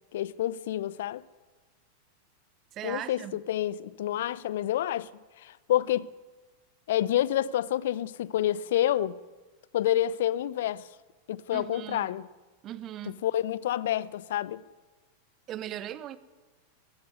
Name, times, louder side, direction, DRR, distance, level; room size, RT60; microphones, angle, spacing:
voice 1, 0.1-1.2 2.8-5.1 5.4-6.1 6.9-9.2 9.7-10.9 11.3-12.3 13.1-14.6, left 12 dB, 55° left, 0.8 m, -28 dB
voice 2, 2.7-3.3 11.5-12.1 12.6-13.2 15.5-16.2, right 12 dB, 30° right, 1.3 m, -38 dB
20.5 x 16.5 x 9.6 m
figure-of-eight pair, 90°, 0 cm